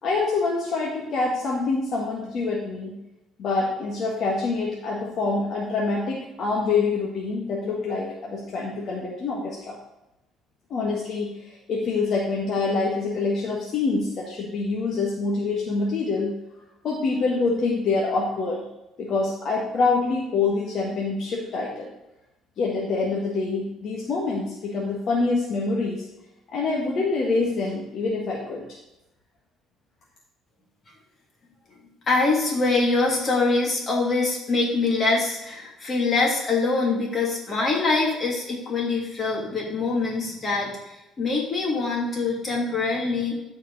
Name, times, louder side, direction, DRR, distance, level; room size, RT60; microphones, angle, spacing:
voice 1, 0.0-2.9 3.4-9.8 10.7-11.3 11.7-16.3 16.8-18.6 19.0-21.9 22.6-26.0 26.5-28.6, left 3 dB, 50° left, -3 dB, 1.6 m, -26 dB
voice 2, 32.1-43.4, left 3 dB, 30° left, -2 dB, 2.7 m, -24 dB
13.5 x 4.8 x 4.1 m, 0.94 s
cardioid pair, 130°, 0 cm